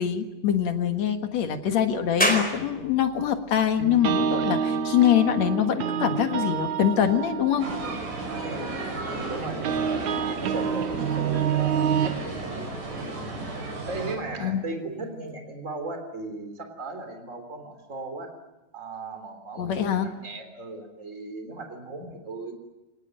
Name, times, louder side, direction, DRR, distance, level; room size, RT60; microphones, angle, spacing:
voice 1, 0.0-7.7 14.4-14.6 19.6-20.1, left 9 dB, 65° left, 6 dB, 2.7 m, -24 dB
sound 1, 2.2-15.3, equal, 5° left, 4.1 m, -37 dB
sound 2, 3.8-12.1, right 8 dB, 70° right, 2.6 m, -28 dB
sound 3, 7.6-14.2, right 2 dB, 90° right, 7.4 m, -34 dB
voice 2, 8.4-8.8 9.1-12.8 13.8-18.3 18.7-22.5, right 2 dB, 25° right, 6 dB, 3.6 m, -37 dB
25.0 x 19.5 x 9.0 m, 1.0 s
omnidirectional pair, 3.6 m